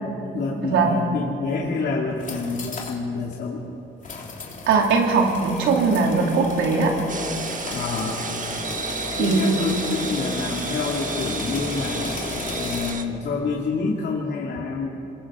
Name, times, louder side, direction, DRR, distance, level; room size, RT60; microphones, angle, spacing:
voice 1, 0.0-3.6 7.7-8.3 9.1-12.2 12.6-14.9, left 4 dB, 60° left, -3 dB, 2.6 m, -28 dB
sound 1, 2.1-3.0 3.3-3.4 4.0-12.9, left 3 dB, 40° left, 3.6 m, -33 dB
voice 2, 4.7-7.0 9.2-9.6, right 4 dB, 85° right, 1 dB, 3.3 m, -20 dB
sound 2, 7.1-13.0, right 5 dB, 40° right, 1.4 m, -32 dB
27.0 x 22.0 x 5.0 m, 2.8 s
cardioid pair, 90°, 20 cm